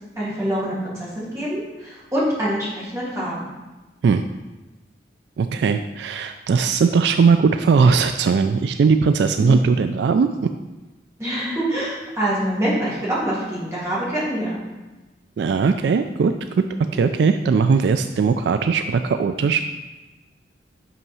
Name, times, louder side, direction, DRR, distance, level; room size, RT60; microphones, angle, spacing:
voice 1, 0.2-3.5 9.4-9.6 11.2-14.6, right 1 dB, 15° right, -8 dB, 2.4 m, -25 dB
voice 2, 5.4-10.5 15.4-16.7 16.9-19.6, right 5 dB, 65° right, 8 dB, 0.3 m, -19 dB
5.6 x 5.6 x 5.5 m, 1.1 s
head